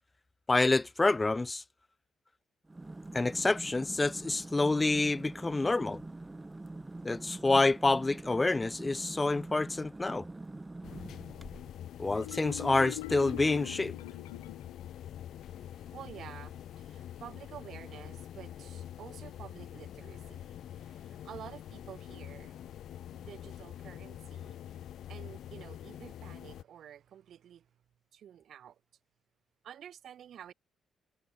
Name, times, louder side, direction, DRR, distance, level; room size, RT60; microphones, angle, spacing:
voice 1, 0.5-1.6 3.1-6.0 7.0-10.2 12.0-14.0, left 2 dB, 25° left, 1.4 m, -28 dB
sound 1, 2.7-11.9, right 2 dB, 20° right, 6.3 m, -45 dB
sound 2, 10.8-26.6, left 11 dB, 70° left, 0.9 m, -45 dB
Marimba xylophone, 12.1-14.9, left 22 dB, 85° left, 0.5 m, -42 dB
voice 2, 15.4-27.7 28.1-28.8 29.6-30.5, right 9 dB, 65° right, 1.8 m, -50 dB
hypercardioid pair, 45°, 0 cm